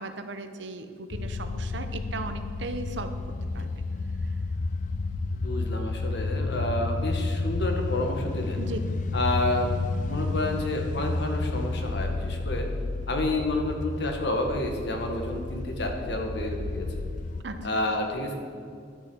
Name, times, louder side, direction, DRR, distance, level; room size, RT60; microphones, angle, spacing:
voice 1, 0.0-3.1 3.5-3.8 8.6-8.8 17.4-17.8, right 2 dB, 75° right, 8 dB, 0.8 m, -37 dB
sound 1, 1.1-17.4, left 3 dB, 45° left, 0.4 m, -31 dB
voice 2, 5.4-8.6 9.1-9.8 10.1-12.7 13.1-17.0 17.6-18.3, left 1 dB, 65° left, 3 dB, 1.6 m, -29 dB
11.5 x 6.4 x 6.2 m, 2.3 s
head